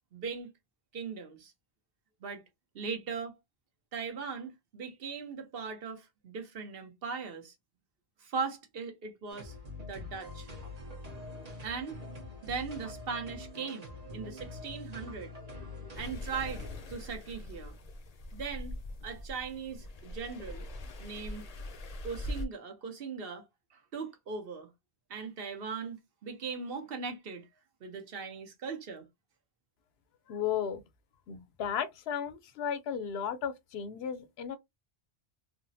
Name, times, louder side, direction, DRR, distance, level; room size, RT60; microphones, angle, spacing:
voice 1, 0.1-0.5 0.9-1.5 2.2-2.4 2.7-3.4 3.9-7.5 8.2-9.6 9.9-10.5 11.6-12.0 12.4-15.3 16.0-17.8 18.3-18.8 19.0-20.6 21.0-21.4 22.0-24.7 25.1-27.5 27.8-29.0, right 5 dB, 70° right, 1.0 m, -39 dB
sound 1, 9.3-16.9, left 2 dB, 45° right, 0.9 m, -44 dB
sound 2, 15.9-22.4, left 1 dB, 50° left, 0.6 m, -42 dB
voice 2, 30.3-30.8 31.3-34.6, left 8 dB, 80° left, 0.8 m, -34 dB
3.5 x 2.0 x 2.6 m
omnidirectional pair, 1.0 m